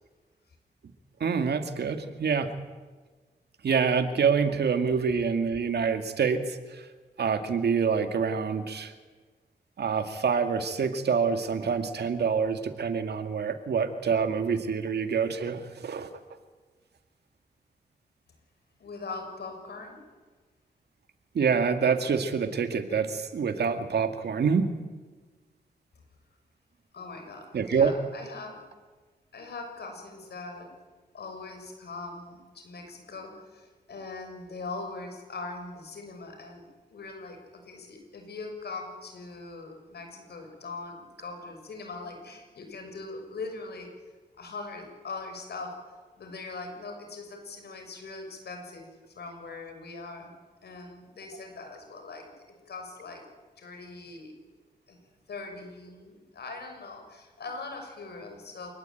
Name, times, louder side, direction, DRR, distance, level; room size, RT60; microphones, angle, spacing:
voice 1, 1.2-2.5 3.6-6.9 7.2-8.9 9.8-16.1 21.3-24.7 27.5-27.9, right 6 dB, 80° right, 8 dB, 2.1 m, -26 dB
voice 2, 18.8-20.0 26.9-28.6 29.3-30.7 31.1-43.9 44.3-48.9 49.1-50.3 50.6-52.3 52.6-53.2 53.6-54.3 54.9-55.0 55.3-58.7, left 3 dB, 80° left, 4 dB, 6.7 m, -41 dB
27.5 x 19.5 x 9.2 m, 1.4 s
cardioid pair, 65°, 17 cm